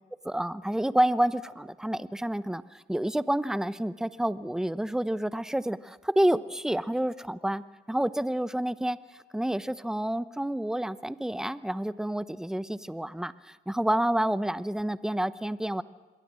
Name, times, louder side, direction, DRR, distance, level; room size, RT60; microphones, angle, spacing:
voice 1, 0.2-9.0 9.3-15.8, right 1 dB, 5° right, 15 dB, 0.9 m, -29 dB
27.5 x 22.0 x 7.7 m, 1.3 s
cardioid pair, 90°, 20 cm